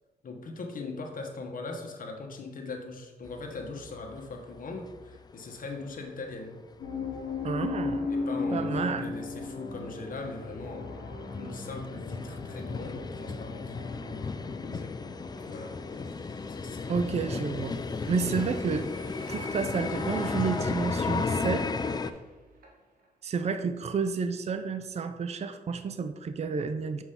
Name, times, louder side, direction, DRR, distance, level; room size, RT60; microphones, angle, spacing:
voice 1, 0.2-6.5 8.1-13.8 14.6-15.0 15.4-15.7 16.5-16.9 17.6-17.7, left 3 dB, 60° left, 2 dB, 1.2 m, -40 dB
sound 1, 3.3-5.3 5.6-5.7 6.3-6.4 6.6-6.7 7.0-22.1, left 4 dB, 25° left, 0.4 m, -35 dB
sound 2, 6.8-16.8, left 3 dB, 75° left, 1.1 m, -37 dB
voice 2, 7.4-8.1 8.5-9.1 16.9-17.8 18.1-18.9 19.3-21.6 23.2-27.0, right 5 dB, 40° right, 8 dB, 0.5 m, -30 dB
sound 3, 14.7-23.1 23.4-23.6, right 2 dB, 65° right, 1.6 m, -54 dB
5.9 x 5.5 x 3.7 m, 1.2 s
cardioid pair, 75°, 16 cm